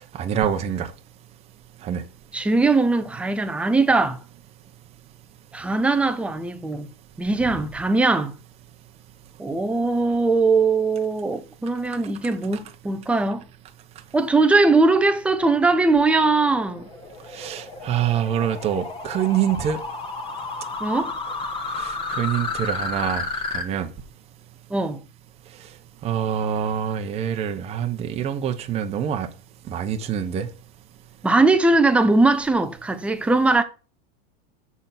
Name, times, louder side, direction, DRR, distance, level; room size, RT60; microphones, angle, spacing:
voice 1, 0.1-0.9 1.8-2.0 17.3-19.8 21.8-23.2 23.5-23.9 26.0-29.3 29.7-30.5, right 9 dB, 20° right, 0.9 m, -25 dB
voice 2, 2.3-4.2 5.5-6.9 7.2-8.3 9.4-13.4 14.1-16.8 20.8-21.1 24.7-25.0 31.2-33.6, right 3 dB, 5° right, 0.5 m, -20 dB
sound 1, 15.7-23.6, left 3 dB, 15° left, 1.2 m, -32 dB
7.0 x 6.8 x 5.8 m
supercardioid pair, 165°, 30 cm